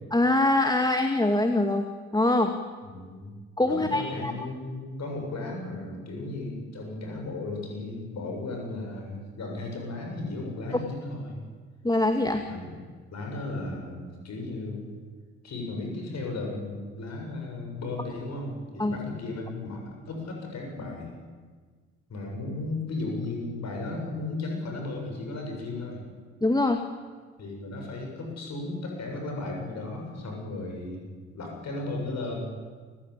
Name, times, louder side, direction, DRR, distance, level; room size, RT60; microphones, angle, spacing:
voice 1, 0.1-1.9 2.1-2.6 3.6-4.3 11.8-12.4 18.8-19.0 26.4-26.8, left 2 dB, 10° left, 6 dB, 2.1 m, -23 dB
voice 2, 2.9-3.3 3.7-11.4 12.5-12.8 13.1-14.9 15.4-21.1 22.1-26.0 27.4-32.5, left 2 dB, 50° left, 2 dB, 7.6 m, -35 dB
28.0 x 16.5 x 8.7 m, 1.5 s
figure-of-eight pair, 45°, 35 cm